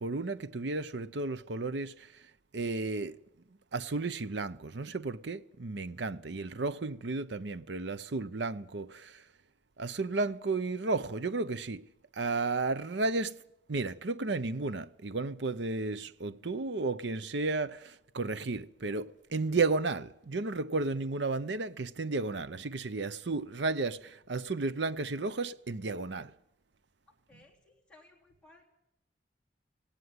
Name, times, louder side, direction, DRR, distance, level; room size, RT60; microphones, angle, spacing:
voice 1, 0.0-2.1 2.5-3.2 3.7-9.1 9.8-11.8 12.2-13.4 13.7-26.3, right 3 dB, 70° right, 0.7 m, -33 dB
voice 2, 27.3-28.7, left 2 dB, 5° left, 3.2 m, -60 dB
17.5 x 17.5 x 9.5 m
head